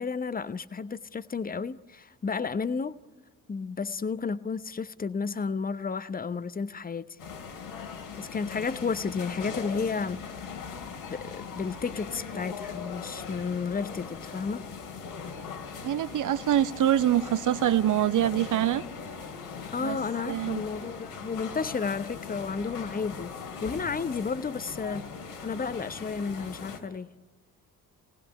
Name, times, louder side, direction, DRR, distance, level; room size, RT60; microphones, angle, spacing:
voice 1, 0.0-3.0 3.5-7.2 8.2-10.5 11.1-14.7 19.7-23.3 23.6-25.1 25.4-27.1, left 5 dB, 20° left, 0.9 m, -32 dB
sound 1, 7.2-26.8, left 5 dB, 75° left, 2.8 m, -40 dB
voice 2, 15.8-18.8 19.8-20.0 20.3-20.6, right 11 dB, 40° right, 0.9 m, -25 dB
27.5 x 18.5 x 9.8 m
figure-of-eight pair, 45°, 46 cm